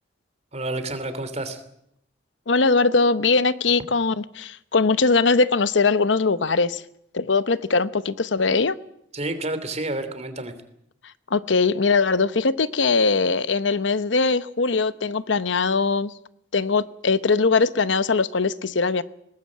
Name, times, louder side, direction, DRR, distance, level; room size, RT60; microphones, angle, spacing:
voice 1, 0.5-1.6 9.1-10.5, right 2 dB, 35° right, 10 dB, 2.9 m, -29 dB
voice 2, 2.5-6.8 7.1-8.8 11.3-16.1 16.5-19.0, left 4 dB, 80° left, 15 dB, 0.9 m, -21 dB
22.0 x 19.0 x 8.7 m, 0.76 s
head